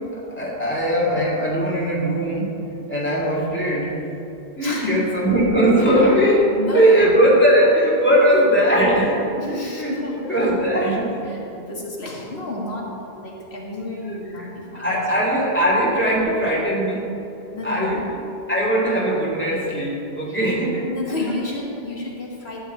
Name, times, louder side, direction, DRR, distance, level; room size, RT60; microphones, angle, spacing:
voice 1, 0.1-2.6 2.9-3.9 4.6-6.5 6.7-11.2 14.0-14.2 14.7-17.1 17.6-18.0 18.5-20.8, equal, 10° left, -5 dB, 2.7 m, -19 dB
voice 2, 4.6-5.1 6.4-7.4 9.4-10.5 11.2-15.4 17.5-18.0 20.3-20.4 20.9-22.6, left 2 dB, 75° left, -2 dB, 1.9 m, -30 dB
13.0 x 5.2 x 8.5 m, 2.8 s
omnidirectional pair, 1.1 m